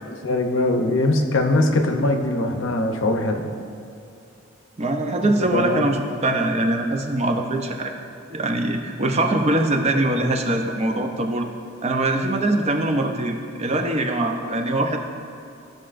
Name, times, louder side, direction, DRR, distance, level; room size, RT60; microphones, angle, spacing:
voice 1, 0.2-3.5 5.2-5.8, left 2 dB, 75° left, 4 dB, 0.7 m, -21 dB
voice 2, 4.8-7.9 8.3-11.5 11.8-15.0, right 2 dB, 35° right, 4 dB, 0.6 m, -22 dB
13.5 x 5.9 x 2.5 m, 2.7 s
head